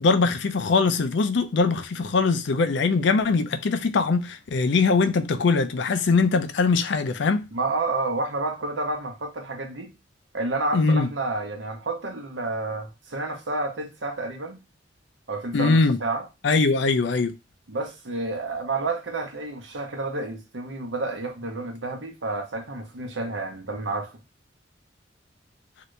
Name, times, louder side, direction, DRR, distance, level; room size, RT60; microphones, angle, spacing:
voice 1, 0.0-7.5 10.7-11.1 15.5-16.0 16.4-17.3, left 4 dB, 70° left, 0.5 m, -22 dB
voice 2, 7.5-9.9 10.3-14.6 15.3-16.3 17.7-24.1, right 2 dB, 90° right, 0.9 m, -30 dB
2.8 x 2.5 x 3.1 m
head